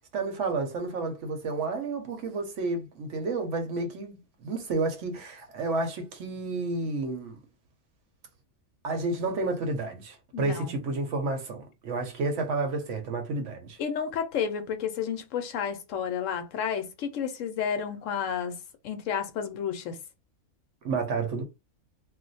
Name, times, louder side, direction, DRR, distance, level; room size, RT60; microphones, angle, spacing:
voice 1, 0.1-7.4 8.8-13.8 20.8-21.4, right 3 dB, 60° right, 0.9 m, -31 dB
voice 2, 10.3-10.7 13.8-18.6 18.8-20.0, left 7 dB, 70° left, 0.8 m, -31 dB
2.4 x 2.2 x 3.9 m
omnidirectional pair, 1.5 m